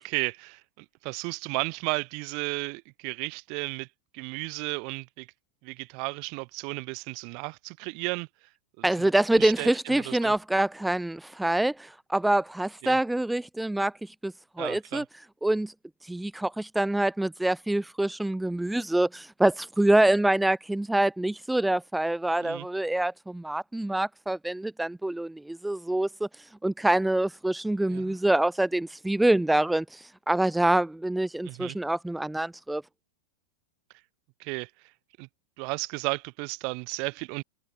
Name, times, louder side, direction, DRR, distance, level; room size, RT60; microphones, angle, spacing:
voice 1, 0.0-3.9 4.1-5.3 5.6-8.3 8.8-9.1 9.4-10.3 12.8-13.0 14.6-15.0 22.4-22.7 27.9-28.2 31.4-31.8 34.4-34.7 35.2-35.3 35.6-37.4, right 34 dB, 45° right, 5.8 m, -34 dB
voice 2, 8.8-15.0 15.4-15.7 16.0-32.8, right 1 dB, 5° right, 1.1 m, -26 dB
figure-of-eight pair, 90°, 0 cm